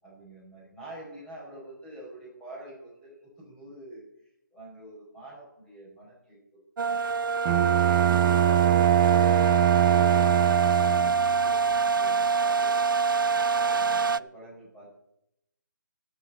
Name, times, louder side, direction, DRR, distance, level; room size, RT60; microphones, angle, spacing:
voice 1, 0.0-4.0 4.5-6.4 6.9-7.0 10.8-12.7 13.5-15.0, right 1 dB, 5° left, -5 dB, 5.2 m, -46 dB
sound 1, 6.8-14.2, right 5 dB, 90° right, 0.4 m, -25 dB
Bowed string instrument, 7.4-11.4, right 13 dB, 20° right, 0.5 m, -23 dB
23.5 x 7.9 x 4.1 m, 0.80 s
hypercardioid pair, 155°, 11 cm